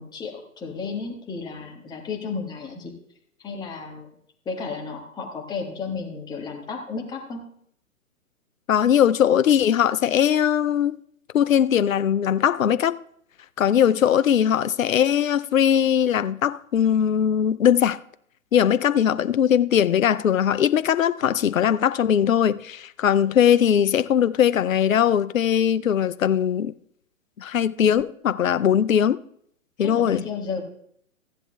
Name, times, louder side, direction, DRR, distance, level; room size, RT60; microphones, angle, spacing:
voice 1, 0.0-2.9 3.4-4.1 4.4-7.4 29.8-30.6, left 5 dB, 10° left, 1.4 m, -33 dB
voice 2, 8.7-11.0 11.3-13.0 13.6-18.0 18.5-26.7 27.4-29.2 29.8-30.2, left 9 dB, 70° left, 0.6 m, -20 dB
16.0 x 10.5 x 2.3 m
figure-of-eight pair, 125°, 41 cm